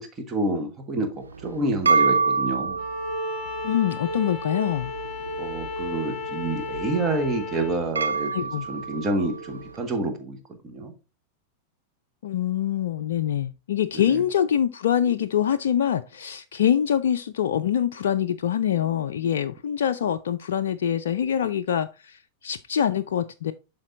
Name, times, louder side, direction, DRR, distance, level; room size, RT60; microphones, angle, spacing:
voice 1, 0.0-2.8 5.4-10.4 10.6-10.9 13.9-14.0, right 2 dB, 25° right, 1.4 m, -28 dB
sound 1, 1.2-9.7, right 4 dB, 75° right, 0.6 m, -28 dB
Bowed string instrument, 2.8-7.8, left 4 dB, 30° left, 1.4 m, -34 dB
voice 2, 3.6-4.9 8.3-8.7 12.2-23.5, left 9 dB, 60° left, 0.3 m, -24 dB
11.5 x 3.9 x 2.5 m
figure-of-eight pair, 90°, 0 cm